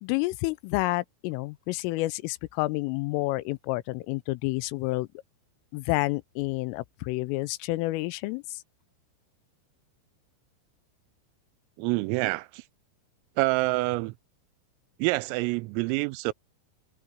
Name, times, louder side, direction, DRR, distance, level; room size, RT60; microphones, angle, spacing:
voice 1, 0.0-5.1 5.7-8.6, left 20 dB, 85° left, 3.2 m, -29 dB
voice 2, 11.8-12.6 13.4-14.1 15.0-16.3, right 23 dB, 90° right, 3.3 m, -27 dB
omnidirectional pair, 5.9 m